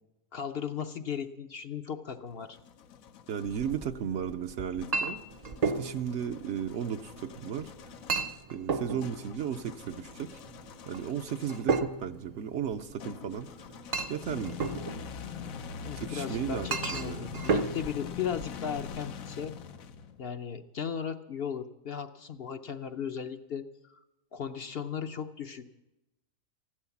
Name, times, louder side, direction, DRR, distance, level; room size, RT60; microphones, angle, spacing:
voice 1, 0.3-2.6 15.8-19.5 20.2-24.0 24.3-25.7, left 7 dB, 55° left, 8 dB, 0.8 m, -36 dB
sound 1, 2.2-3.9 4.8-11.8 13.0-20.3, left 7 dB, 85° left, 1.2 m, -44 dB
voice 2, 3.3-5.2 5.6-7.7 8.5-10.4 10.9-13.5 14.1-14.6 16.0-17.4, right 8 dB, 65° right, 9 dB, 0.9 m, -35 dB
Chink clink, 3.5-19.0, right 4 dB, 45° right, 0.6 m, -35 dB
15.0 x 12.0 x 7.1 m, 0.95 s
omnidirectional pair, 1.4 m